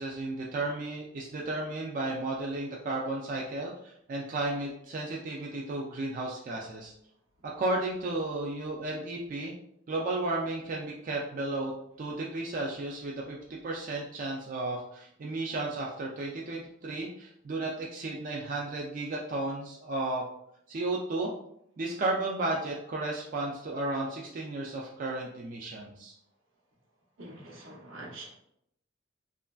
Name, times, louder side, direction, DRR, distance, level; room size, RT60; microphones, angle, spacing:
voice 1, 0.0-6.9 7.4-9.5 9.9-11.7 12.0-20.2 20.7-21.3 21.8-26.1, right 2 dB, 45° right, -2 dB, 0.4 m, -33 dB
voice 2, 27.2-28.3, right 1 dB, 85° right, -2 dB, 0.9 m, -45 dB
3.0 x 2.4 x 2.3 m, 0.74 s
head